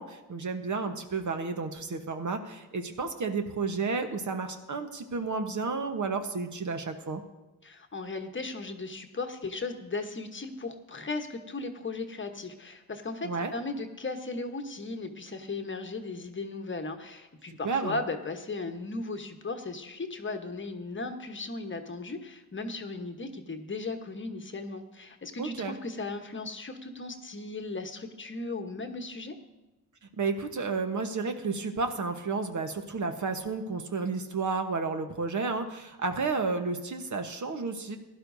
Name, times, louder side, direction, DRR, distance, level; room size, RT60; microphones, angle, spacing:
voice 1, 0.0-7.2 13.2-13.5 17.5-18.0 25.4-25.8 30.2-38.0, right 4 dB, 45° right, 7 dB, 1.1 m, -32 dB
voice 2, 7.6-29.3, left 3 dB, 30° left, 6 dB, 1.1 m, -36 dB
16.0 x 11.0 x 2.7 m, 1.1 s
supercardioid pair, 60°, 41 cm